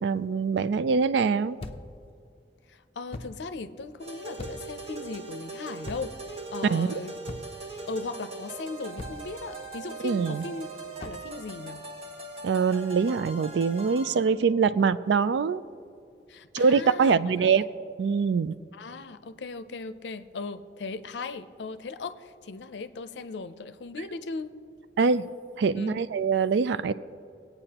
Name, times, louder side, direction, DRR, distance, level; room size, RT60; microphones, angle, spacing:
voice 1, 0.0-1.6 6.7-7.0 10.0-10.4 12.4-15.6 16.5-17.6 18.0-18.5 25.0-25.2 25.6-26.9, right 5 dB, 80° right, 15 dB, 0.4 m, -24 dB
sound 1, 1.6-2.0 3.1-3.4 4.4-4.8 5.8-6.3 7.3-7.7 9.0-9.4 11.0-11.3, left 2 dB, 35° left, 0.6 m, -40 dB
voice 2, 2.7-6.2 6.5-7.2 7.9-10.7 11.0-11.8 16.3-17.7 18.7-24.5 25.7-26.0, left 3 dB, 80° left, 11 dB, 0.5 m, -38 dB
sound 2, 4.0-14.3, right 3 dB, 35° right, 1.2 m, -41 dB
20.0 x 8.9 x 2.9 m, 2.3 s
head